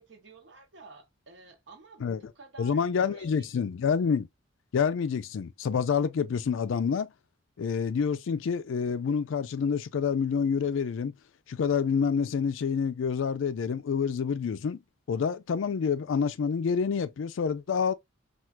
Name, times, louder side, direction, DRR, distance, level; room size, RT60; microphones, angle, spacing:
voice 1, 0.0-3.6, right 4 dB, 60° right, 0.8 m, -52 dB
voice 2, 2.6-4.3 4.7-7.1 7.6-11.1 11.5-14.8 15.1-17.9, left 6 dB, 75° left, 0.4 m, -27 dB
4.4 x 2.4 x 2.2 m
head